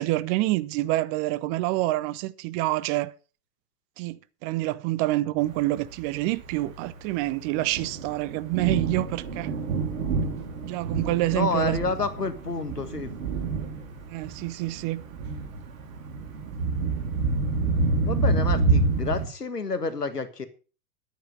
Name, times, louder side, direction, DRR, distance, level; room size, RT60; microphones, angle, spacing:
voice 1, 0.0-3.1 4.0-9.5 10.6-11.8 14.1-15.0, right 17 dB, 25° right, 0.6 m, -27 dB
Thunder, 5.6-19.2, right 3 dB, 60° right, 2.8 m, -28 dB
voice 2, 11.3-13.1 18.0-20.5, left 4 dB, 80° left, 1.8 m, -29 dB
10.5 x 9.1 x 6.2 m
figure-of-eight pair, 100°, 46 cm